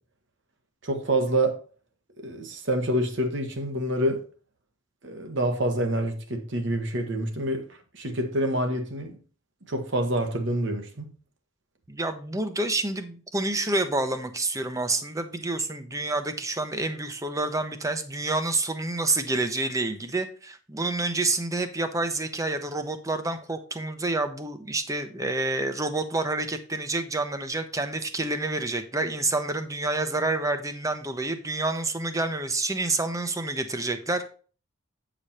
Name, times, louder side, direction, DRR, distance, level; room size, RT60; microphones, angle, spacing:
voice 1, 0.8-1.6 2.2-4.2 5.0-9.2 9.7-11.1, right 1 dB, 60° right, 1.3 m, -27 dB
voice 2, 11.9-34.3, right 2 dB, 15° right, 0.8 m, -28 dB
8.8 x 5.1 x 4.2 m
head